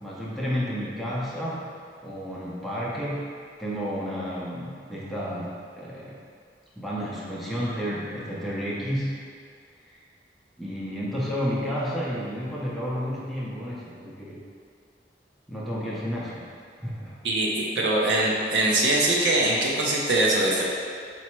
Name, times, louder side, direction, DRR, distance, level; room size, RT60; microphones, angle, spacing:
voice 1, 0.0-1.7 2.0-3.3 3.6-5.5 5.8-6.2 6.8-9.2 9.9-10.0 10.6-14.4 15.5-16.5 16.8-17.2, equal, ahead, -7 dB, 0.6 m, -31 dB
voice 2, 17.2-20.6, right 2 dB, 85° right, -3 dB, 0.7 m, -22 dB
4.5 x 2.1 x 4.3 m, 2.2 s
head